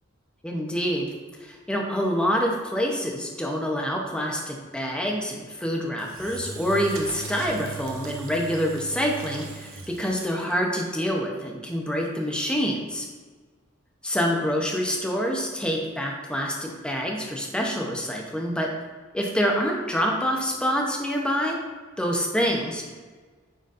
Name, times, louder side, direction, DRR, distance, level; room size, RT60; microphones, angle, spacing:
voice 1, 0.4-1.1 1.4-13.1 14.0-18.7 19.1-21.6 22.0-22.9, equal, 5° left, 0 dB, 0.7 m, -26 dB
Engine / Drill, 6.0-10.5, right 4 dB, 75° right, 0.8 m, -38 dB
9.2 x 4.0 x 2.6 m, 1.5 s
head